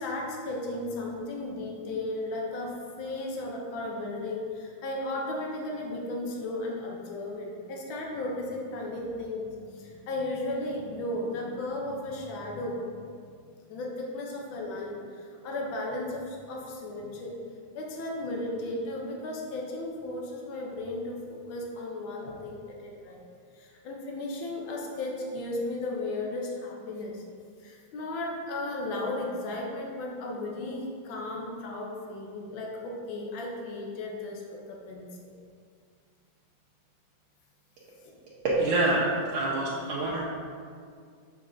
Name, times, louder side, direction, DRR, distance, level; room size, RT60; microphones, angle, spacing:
voice 1, 0.0-13.0 13.7-17.3 17.7-23.2 23.6-27.2 27.6-35.3 38.0-38.1, left 2 dB, 85° left, -1 dB, 1.6 m, -35 dB
voice 2, 38.4-40.2, right 2 dB, 90° right, -7 dB, 1.6 m, -26 dB
7.0 x 5.3 x 2.6 m, 2.2 s
omnidirectional pair, 2.1 m